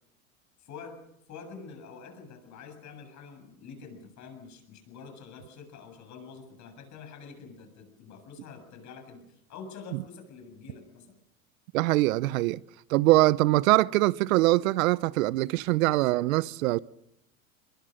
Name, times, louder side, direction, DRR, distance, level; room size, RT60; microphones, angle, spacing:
voice 1, 0.6-1.0 1.3-11.2, left 5 dB, 40° left, 7.5 m, -46 dB
voice 2, 11.7-12.6 12.9-16.8, right 18 dB, 70° right, 0.8 m, -23 dB
23.0 x 22.5 x 6.5 m
supercardioid pair, 115°, 42 cm